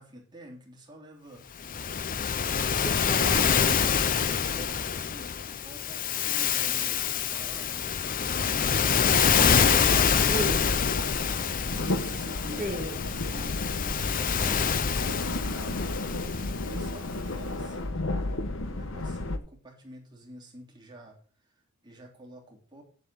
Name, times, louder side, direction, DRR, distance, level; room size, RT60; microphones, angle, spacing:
voice 1, 0.0-2.8 3.2-9.2 11.7-18.3 18.6-22.8, right 1 dB, 20° right, -1 dB, 3.2 m, -48 dB
Waves surf, 1.6-17.1, left 7 dB, 40° left, 0.6 m, -26 dB
voice 2, 2.8-3.5 8.8-10.8 12.6-13.1, equal, ahead, -5 dB, 2.2 m, -35 dB
sound 1, 9.7-19.4, left 2 dB, 60° left, 1.2 m, -33 dB
9.3 x 7.6 x 6.9 m, 0.43 s
head